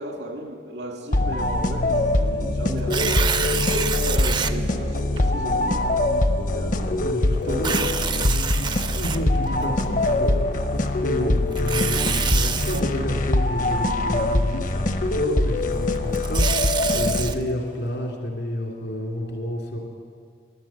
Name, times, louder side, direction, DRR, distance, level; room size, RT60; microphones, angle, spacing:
voice 1, 0.0-5.8 6.4-8.3 11.0-11.4, right 1 dB, 85° right, 1 dB, 2.2 m, -35 dB
sound 1, 1.1-17.6, left 2 dB, 45° left, 0.7 m, -23 dB
Tearing, 2.8-4.5 5.2-5.3 7.5-9.6 11.5-12.8 15.9-17.3, right 7 dB, 25° right, 0.4 m, -27 dB
voice 2, 6.9-7.8 8.2-19.8, equal, 80° left, 0 dB, 2.8 m, -30 dB
13.5 x 11.0 x 7.4 m, 2.2 s
head